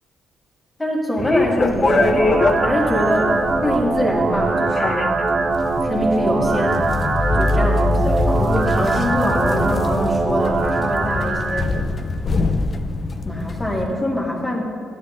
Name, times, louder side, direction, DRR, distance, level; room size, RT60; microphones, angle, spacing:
voice 1, 0.8-3.3 3.6-5.1 5.8-7.0 7.3-11.7 13.2-14.6, equal, 15° left, -2 dB, 2.0 m, -24 dB
sound 1, 1.2-13.9, left 3 dB, 40° left, 0.6 m, -23 dB
sound 2, 1.6-11.6, right 3 dB, 35° right, 1.1 m, -22 dB
13.0 x 9.8 x 2.6 m, 2.3 s
cardioid pair, 90°, 0 cm